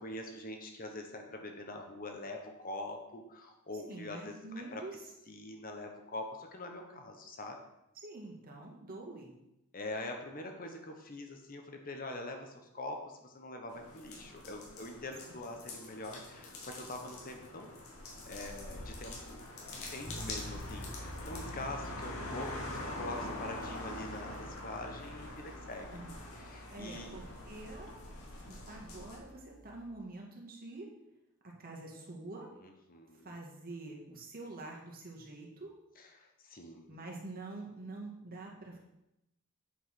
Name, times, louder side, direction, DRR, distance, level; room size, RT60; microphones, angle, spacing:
voice 1, 0.0-4.8 5.3-7.6 9.7-17.8 18.2-19.4 19.9-26.0 26.4-27.2 32.6-33.3 36.0-37.0, left 2 dB, 40° left, 3 dB, 1.2 m, -44 dB
voice 2, 3.8-5.0 7.9-9.3 15.3-15.4 25.9-26.2 26.7-28.0 28.4-30.9 31.4-32.5 33.2-35.7 36.9-38.8, right 2 dB, 45° right, 0 dB, 2.0 m, -46 dB
sound 1, 13.7-29.2, left 2 dB, 90° left, 2.3 m, -44 dB
sound 2, 20.1-29.9, equal, 20° left, 1.2 m, -50 dB
8.3 x 5.6 x 5.9 m, 0.87 s
head